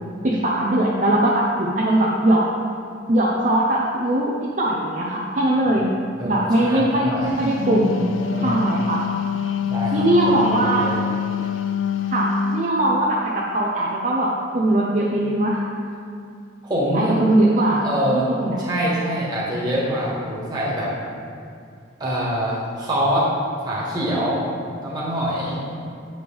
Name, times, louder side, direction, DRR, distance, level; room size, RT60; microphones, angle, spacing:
voice 1, 0.2-2.5 3.1-5.9 6.2-8.1 8.4-9.0 9.9-10.9 12.1-12.3 12.5-15.6 16.9-18.6, right 1 dB, 40° right, -4 dB, 0.6 m, -20 dB
voice 2, 6.2-7.3 8.0-8.6 9.7-10.0 10.5-11.0 16.6-17.2 17.8-18.3 18.6-20.9 22.0-23.3 23.6-24.5 24.8-25.6, equal, 20° right, -7 dB, 1.6 m, -25 dB
Wind instrument woodwind instrument, 7.4-12.7, left 6 dB, 90° left, 0.4 m, -25 dB
8.4 x 5.2 x 3.4 m, 2.5 s
head